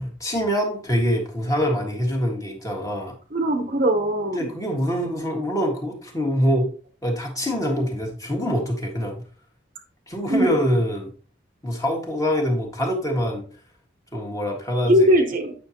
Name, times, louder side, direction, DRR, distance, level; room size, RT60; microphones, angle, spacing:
voice 1, 0.0-3.1 4.3-6.7 7.0-9.2 10.1-11.1 11.6-13.4 14.1-15.1, equal, 15° left, 1 dB, 1.6 m, -24 dB
voice 2, 3.3-4.5 10.3-10.5 14.9-15.5, equal, 45° right, 5 dB, 0.8 m, -20 dB
9.2 x 6.0 x 2.9 m, 0.41 s
head